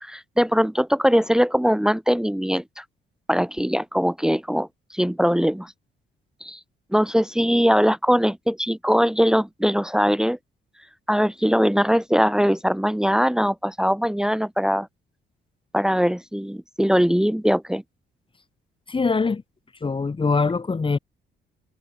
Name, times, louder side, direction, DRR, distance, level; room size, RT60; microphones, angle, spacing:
voice 1, 0.0-2.8 3.3-5.7 6.4-6.6 6.9-10.4 11.1-14.9 15.7-17.8, equal, 5° right, 1.3 m, -21 dB
voice 2, 18.9-19.4 19.8-21.0, left 4 dB, 25° left, 1.3 m, -22 dB
cardioid pair, 90°, 20 cm